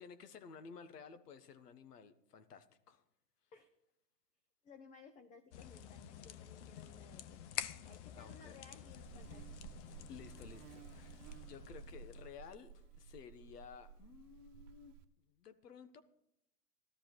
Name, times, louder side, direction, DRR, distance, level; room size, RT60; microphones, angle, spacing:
voice 1, 0.0-3.0 8.2-8.5 10.1-14.9 15.3-16.0, left 6 dB, 80° left, 11 dB, 1.5 m, -54 dB
voice 2, 4.6-7.5 7.8-9.7, left 5 dB, 15° left, 8 dB, 0.7 m, -59 dB
sound 1, 5.5-12.5, left 10 dB, 50° left, 0.8 m, -49 dB
Buzz, 8.9-15.0, right 8 dB, 50° right, 1.2 m, -55 dB
14.5 x 13.0 x 4.6 m, 0.82 s
hypercardioid pair, 125°, 47 cm